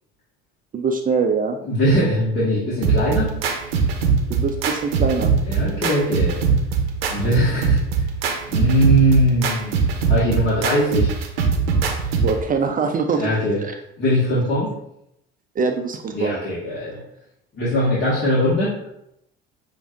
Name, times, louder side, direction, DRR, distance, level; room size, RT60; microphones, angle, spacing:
voice 1, 0.7-1.6 4.3-5.3 12.2-13.3 13.6-13.7 15.6-16.4, right 5 dB, 30° right, 4 dB, 0.5 m, -23 dB
voice 2, 1.6-3.3 5.4-6.4 7.1-7.8 8.5-11.1 13.2-13.6 14.0-14.7 16.1-17.0 17.5-18.7, equal, 40° left, -7 dB, 1.6 m, -20 dB
sound 1, 2.8-12.4, right 5 dB, 80° right, 0.7 m, -21 dB
6.8 x 2.6 x 2.5 m, 0.78 s
hypercardioid pair, 65°, 30 cm